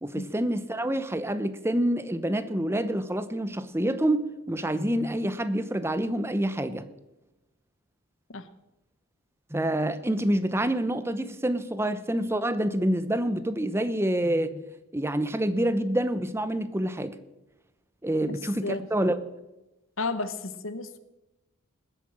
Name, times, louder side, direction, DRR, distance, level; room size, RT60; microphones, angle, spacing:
voice 1, 0.0-6.9 9.5-14.6 14.9-17.2 18.0-19.2, right 1 dB, 10° right, 12 dB, 0.8 m, -27 dB
voice 2, 18.2-18.9 20.0-21.0, left 3 dB, 65° left, 12 dB, 1.1 m, -33 dB
19.5 x 8.5 x 7.4 m, 1.0 s
head